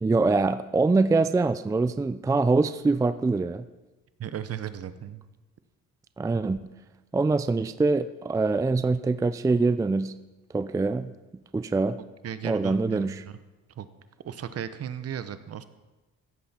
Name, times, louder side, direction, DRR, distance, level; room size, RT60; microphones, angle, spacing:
voice 1, 0.0-3.7 6.2-6.6 7.1-10.1 10.5-11.1 11.5-12.0 12.4-13.2, right 3 dB, 10° right, 13 dB, 0.3 m, -24 dB
voice 2, 4.2-5.2 12.2-13.4 13.8-13.9 14.2-15.6, right 9 dB, 50° right, 12 dB, 0.8 m, -36 dB
16.0 x 7.8 x 4.3 m, 1.1 s
cardioid pair, 90°, 30 cm